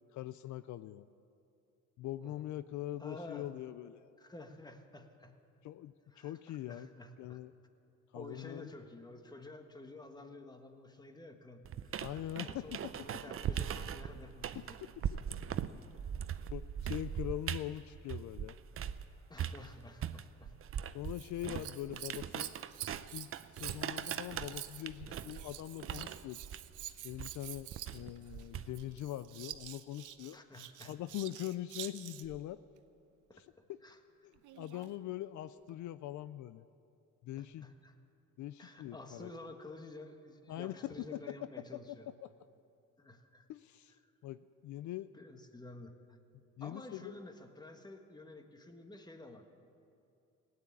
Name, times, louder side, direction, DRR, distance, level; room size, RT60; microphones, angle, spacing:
voice 1, 0.1-1.1 2.0-4.0 5.6-6.9 7.2-7.5 8.1-8.7 12.0-12.8 14.8-15.0 16.4-18.6 20.9-22.5 23.1-26.4 27.0-30.4 30.9-32.6 33.3-33.8 34.2-36.6 37.2-37.6 38.4-39.3 40.5-41.2 42.2-42.3 43.5-43.9 44.2-45.1 46.6-47.1, left 13 dB, 75° left, 14 dB, 0.5 m, -42 dB
voice 2, 3.0-3.5 4.2-5.4 6.1-7.4 8.1-12.0 12.4-14.8 19.3-20.5 25.1-25.2 30.3-30.9 33.8-34.0 37.4-37.9 38.6-42.1 43.0-43.5 45.1-46.2 46.6-49.5, left 2 dB, 15° left, 6 dB, 1.4 m, -51 dB
sound 1, 11.7-19.0 19.4-29.0, right 9 dB, 45° right, 0.6 m, -40 dB
Scissors, 21.0-32.4 34.4-35.0 35.7-35.8, right 13 dB, 85° right, 0.7 m, -48 dB
17.0 x 9.6 x 8.6 m, 2.6 s
cardioid pair, 90°, 30 cm